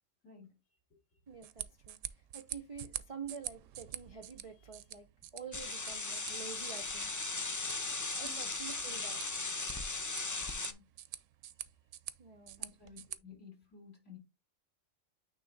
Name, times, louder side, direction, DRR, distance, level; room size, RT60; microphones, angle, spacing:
voice 1, 0.2-0.5 8.2-8.5 10.5-10.8 12.6-14.2, left 5 dB, 65° left, 4.4 m, -54 dB
voice 2, 1.3-7.2 8.2-9.2 12.2-12.7, right 6 dB, 40° right, 0.5 m, -48 dB
sound 1, 1.3-13.2, right 11 dB, 80° right, 1.0 m, -47 dB
sound 2, 5.5-10.7, left 3 dB, 30° left, 0.3 m, -37 dB
9.1 x 3.2 x 3.9 m
omnidirectional pair, 1.3 m